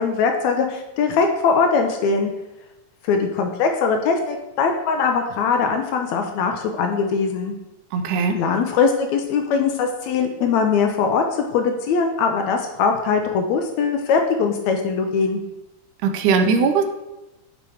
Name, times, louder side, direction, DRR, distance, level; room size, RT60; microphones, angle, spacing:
voice 1, 0.0-2.3 3.0-7.5 8.4-11.2 11.5-15.4, left 5 dB, 80° left, 4 dB, 1.7 m, -21 dB
voice 2, 7.9-8.4 16.0-16.8, right 5 dB, 80° right, 6 dB, 2.0 m, -19 dB
7.6 x 3.1 x 4.8 m, 0.98 s
omnidirectional pair, 3.5 m